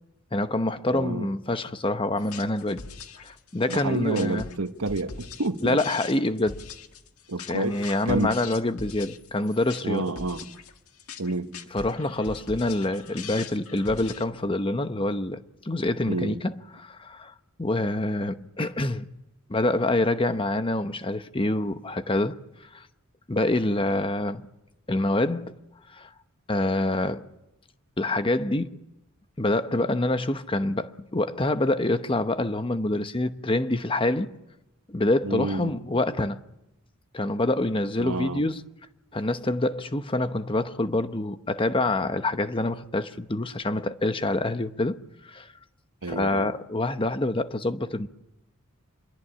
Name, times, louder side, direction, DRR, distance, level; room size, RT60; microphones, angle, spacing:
voice 1, 0.3-2.8 3.2-4.5 5.6-6.7 7.4-10.1 11.7-17.3 17.6-19.1 19.5-22.4 22.7-22.8 23.3-24.5 24.9-25.5 25.9-26.1 26.5-27.3 28.0-28.8 29.4-34.3 34.9-36.4 37.1-38.6 39.1-45.0 45.2-45.5 46.1-48.1, left 2 dB, 25° left, 0.9 m, -26 dB
voice 2, 0.9-1.3 3.7-5.8 7.3-7.8 8.1-8.4 9.8-10.4 11.2-11.5 16.1-16.4 35.2-35.7 38.0-38.4 46.0-46.5, right 2 dB, 85° right, 1.3 m, -29 dB
sound 1, 2.2-14.2, left 5 dB, 85° left, 1.7 m, -42 dB
26.5 x 22.5 x 8.6 m
head